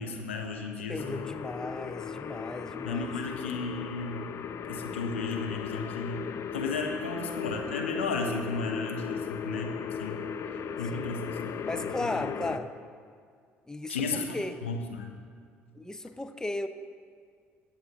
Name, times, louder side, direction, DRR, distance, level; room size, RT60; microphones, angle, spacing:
voice 1, 0.0-1.2 2.8-4.3 4.6-10.2 10.8-11.5 12.0-12.3 13.9-15.1, left 3 dB, 85° left, 3 dB, 0.8 m, -34 dB
voice 2, 0.9-3.2 10.9-11.1 11.6-12.7 13.7-14.6 15.7-16.7, left 2 dB, 10° left, 9 dB, 0.7 m, -36 dB
sound 1, 1.0-12.6, left 6 dB, 45° left, 0.6 m, -36 dB
20.0 x 7.4 x 3.0 m, 2.1 s
hypercardioid pair, 55°, 6 cm